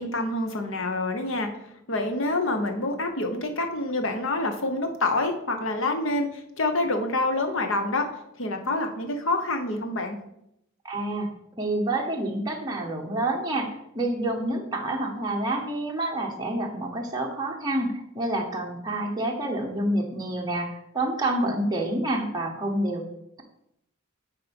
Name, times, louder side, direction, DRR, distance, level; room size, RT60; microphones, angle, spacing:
voice 1, 0.0-1.5 1.9-8.1 8.4-10.2, left 2 dB, 70° left, 6 dB, 1.1 m, -27 dB
voice 2, 10.8-11.3 11.6-23.0, right 1 dB, 20° right, -1 dB, 1.0 m, -28 dB
8.8 x 4.4 x 5.3 m, 0.79 s
head